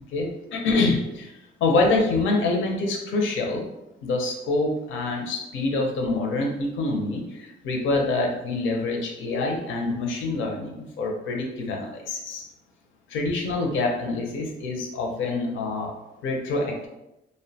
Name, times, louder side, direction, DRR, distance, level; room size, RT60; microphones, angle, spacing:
voice 1, 0.1-1.3 1.6-3.6 4.0-12.5 13.1-15.9 16.2-16.9, left 3 dB, 75° left, 1 dB, 0.5 m, -26 dB
2.6 x 2.1 x 2.6 m, 0.92 s
cardioid pair, 90°, 20 cm